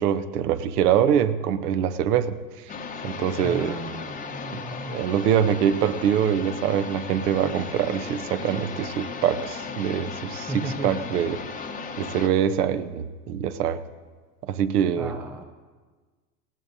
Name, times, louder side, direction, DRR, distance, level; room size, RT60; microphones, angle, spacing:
voice 1, 0.0-2.4 3.0-3.8 4.5-4.6 4.9-11.6 12.0-13.8 14.4-15.1, right 9 dB, 70° right, 12 dB, 1.0 m, -24 dB
sound 1, 2.7-12.3, left 5 dB, 15° left, 0.9 m, -36 dB
voice 2, 3.4-5.0 10.5-11.0 15.0-15.4, right 1 dB, 5° right, 6 dB, 0.4 m, -35 dB
18.5 x 17.0 x 2.7 m, 1.4 s
hypercardioid pair, 110°, 48 cm